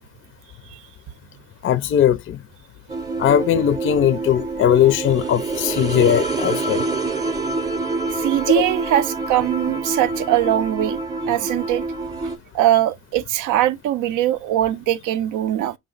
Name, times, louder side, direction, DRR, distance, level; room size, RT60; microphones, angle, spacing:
voice 1, 1.6-2.4 3.2-6.8, left 10 dB, 45° left, 0.4 m, -19 dB
sound 1, 2.9-12.4, right 3 dB, 15° right, 0.6 m, -26 dB
voice 2, 8.1-11.8 12.5-15.8, right 13 dB, 80° right, 0.5 m, -21 dB
5.0 x 2.0 x 3.8 m
cardioid pair, 90°, 30 cm